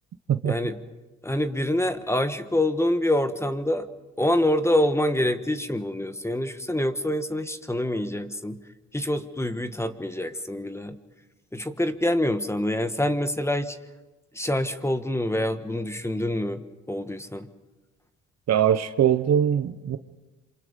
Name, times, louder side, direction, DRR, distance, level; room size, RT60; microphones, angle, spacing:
voice 1, 0.4-0.8 1.2-3.9 4.2-8.6 8.9-11.0 11.5-13.8 14.3-16.6 16.9-17.5, left 1 dB, 10° left, 1.4 m, -26 dB
voice 2, 18.5-20.0, right 9 dB, 60° right, 1.1 m, -22 dB
27.5 x 26.5 x 5.3 m
cardioid pair, 90°, 30 cm